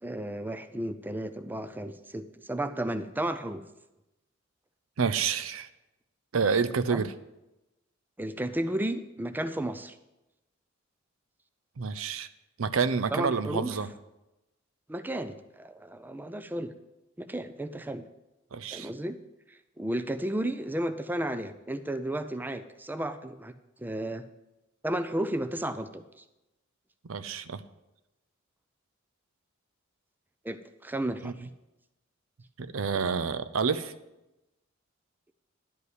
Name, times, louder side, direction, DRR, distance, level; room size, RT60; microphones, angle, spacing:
voice 1, 0.0-3.6 6.9-7.1 8.2-10.0 13.1-13.7 14.9-16.7 17.2-18.1 18.7-19.2 19.5-23.5 23.8-24.2 24.8-26.0 30.4-31.5, right 1 dB, 10° right, 11 dB, 0.4 m, -33 dB
voice 2, 5.0-5.7 6.3-7.1 11.8-12.3 12.6-13.9 18.5-18.9 27.0-27.6 31.2-31.3 32.6-33.9, right 5 dB, 80° right, 12 dB, 0.6 m, -28 dB
11.0 x 5.4 x 8.1 m, 0.96 s
head